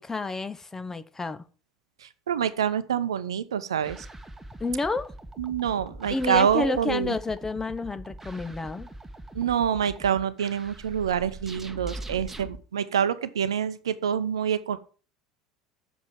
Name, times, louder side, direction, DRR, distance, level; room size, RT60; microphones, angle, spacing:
voice 1, 0.0-1.4 4.6-5.1 6.1-8.9, left 3 dB, 15° left, 1.0 m, -30 dB
voice 2, 2.0-4.1 5.4-7.1 9.3-14.8, right 8 dB, 75° right, 0.8 m, -26 dB
sound 1, 3.8-12.6, right 1 dB, 10° right, 1.4 m, -42 dB
7.4 x 7.1 x 7.6 m
figure-of-eight pair, 70°, 3 cm